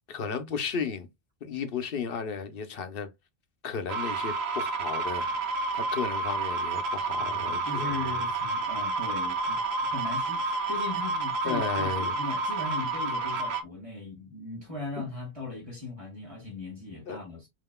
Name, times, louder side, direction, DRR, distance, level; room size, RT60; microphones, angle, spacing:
voice 1, 0.1-1.1 1.4-3.1 3.6-5.3 5.7-7.9 11.4-12.1 15.0-15.1 17.1-17.2, left 6 dB, 65° left, 1.0 m, -34 dB
sound 1, 3.9-13.6, right 3 dB, 85° right, 1.0 m, -30 dB
voice 2, 7.2-17.5, left 3 dB, 30° right, 1.9 m, -38 dB
5.5 x 2.9 x 2.3 m
omnidirectional pair, 1.0 m